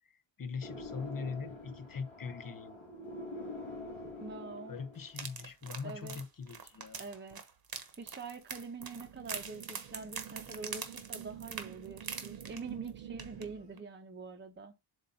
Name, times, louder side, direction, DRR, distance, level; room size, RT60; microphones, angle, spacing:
voice 1, 0.0-2.8 4.0-4.2 4.7-7.2, left 5 dB, 45° left, 0.8 m, -42 dB
sound 1, 0.6-5.2, left 1 dB, 75° left, 2.7 m, -45 dB
voice 2, 4.2-4.8 5.8-6.2 7.0-7.4 8.0-14.7, right 4 dB, 20° right, 0.9 m, -45 dB
sound 2, 5.1-12.9 13.2-13.4 13.8-13.9, right 6 dB, 45° right, 1.2 m, -44 dB
sound 3, 8.8-13.8, right 10 dB, 75° right, 0.8 m, -49 dB
7.8 x 2.7 x 5.3 m
wide cardioid pair, 150°, 49 cm